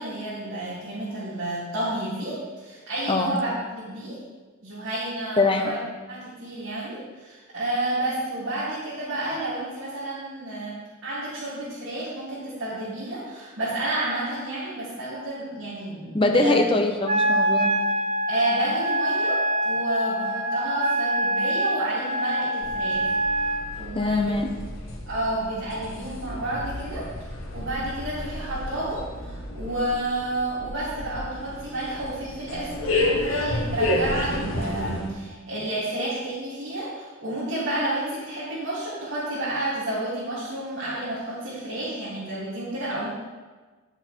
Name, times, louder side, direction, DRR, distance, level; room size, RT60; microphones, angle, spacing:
voice 1, 0.0-3.5 3.8-4.2 4.6-5.8 6.1-16.6 18.3-23.1 23.7-24.3 25.1-27.0 27.5-43.1, right 1 dB, 75° right, -11 dB, 3.2 m, -30 dB
voice 2, 3.1-3.4 5.4-5.8 16.1-17.7 23.9-24.5, left 2 dB, 25° left, 4 dB, 0.9 m, -22 dB
Wind instrument woodwind instrument, 17.1-23.7, right 1 dB, 35° right, 0.8 m, -25 dB
sound 1, 22.6-35.1, left 1 dB, 80° left, 1.5 m, -31 dB
10.0 x 7.0 x 4.6 m, 1.3 s
head